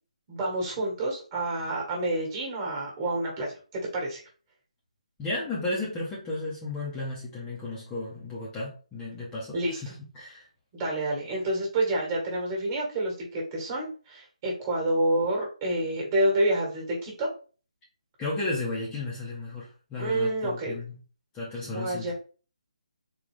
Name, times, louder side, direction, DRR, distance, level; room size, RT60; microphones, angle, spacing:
voice 1, 0.3-4.2 9.5-9.8 10.7-17.3 20.0-20.7 21.7-22.1, right 1 dB, 25° right, 1.4 m, -28 dB
voice 2, 5.2-10.5 18.2-21.0 21.3-22.1, left 2 dB, 15° left, 0.8 m, -34 dB
3.9 x 2.3 x 3.3 m
figure-of-eight pair, 155°, 4 cm